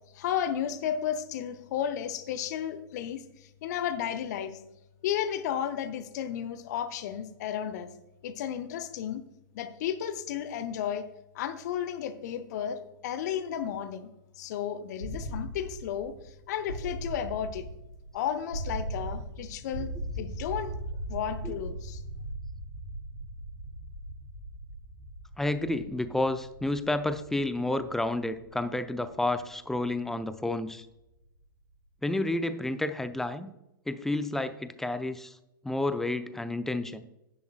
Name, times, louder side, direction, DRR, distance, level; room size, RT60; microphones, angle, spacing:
voice 1, 0.1-3.2 3.6-4.6 5.0-7.9 8.2-9.2 9.5-11.1 11.3-14.1 14.4-16.1 16.5-17.7 18.1-19.9 20.2-20.7 21.1-22.0, left 9 dB, 50° left, 11 dB, 0.8 m, -33 dB
sound 1, 15.0-30.8, right 1 dB, 85° left, 3.6 m, -39 dB
voice 2, 25.4-30.9 32.0-33.5 33.9-35.3 35.6-37.0, left 2 dB, 5° left, 12 dB, 0.5 m, -30 dB
10.5 x 10.0 x 2.3 m, 0.91 s
figure-of-eight pair, 105°, 12 cm